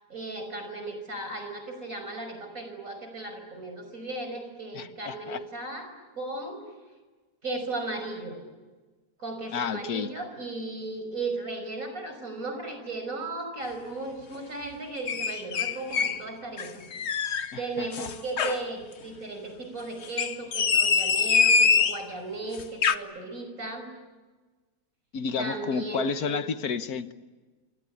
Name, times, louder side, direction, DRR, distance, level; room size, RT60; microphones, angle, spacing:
voice 1, 0.1-5.9 6.2-6.6 7.4-8.4 9.2-16.8 17.2-23.9 25.4-26.4, right 2 dB, 60° right, 6 dB, 6.1 m, -36 dB
voice 2, 4.7-5.4 9.5-10.1 17.5-18.1 25.1-27.1, left 6 dB, 75° left, 11 dB, 1.6 m, -31 dB
sound 1, 15.1-16.2 16.6-17.5 17.9-18.6 20.0-22.0 22.6-23.0, left 6 dB, 50° left, 1.2 m, -24 dB
28.0 x 25.0 x 8.5 m, 1.3 s
omnidirectional pair, 1.6 m